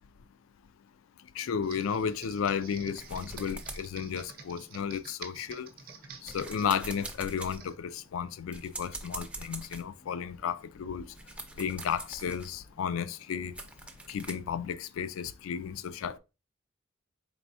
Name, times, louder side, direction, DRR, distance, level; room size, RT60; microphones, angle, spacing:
voice 1, 1.3-5.7 6.2-11.0 11.6-13.5 14.1-16.2, left 7 dB, 80° left, 0.3 m, -33 dB
Computer keyboard, 1.6-7.7, right 6 dB, 45° right, 0.6 m, -48 dB
sound 1, 3.0-4.9 5.4-14.3, right 2 dB, 5° right, 0.4 m, -45 dB
4.2 x 3.4 x 2.7 m
head